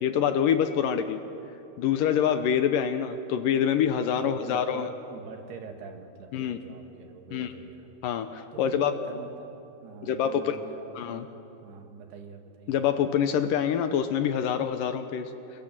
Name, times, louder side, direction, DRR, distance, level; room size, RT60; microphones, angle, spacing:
voice 1, 0.0-1.2 1.8-4.9 6.3-6.6 7.3-7.5 8.0-8.9 10.0-10.6 11.0-11.2 12.7-15.3, left 8 dB, 75° left, 8 dB, 2.3 m, -26 dB
voice 2, 4.2-7.9 8.5-12.8, right 5 dB, 90° right, 4 dB, 3.9 m, -44 dB
29.0 x 22.5 x 7.6 m, 2.9 s
omnidirectional pair, 4.5 m